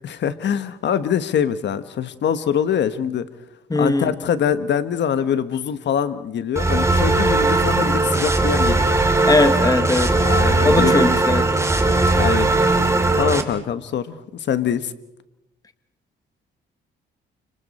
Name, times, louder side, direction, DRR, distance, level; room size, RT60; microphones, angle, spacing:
voice 1, 0.0-3.3 3.7-8.9 10.1-10.9 12.1-12.9 13.1-14.2 14.5-14.9, left 8 dB, 65° left, 12 dB, 1.3 m, -23 dB
voice 2, 3.7-4.1 9.2-10.1 10.6-11.5, left 3 dB, 20° left, 10 dB, 1.5 m, -19 dB
sound 1, 6.6-13.4, right 2 dB, 15° right, 2.9 m, -18 dB
29.5 x 27.0 x 4.3 m, 0.91 s
cardioid pair, 90°, 20 cm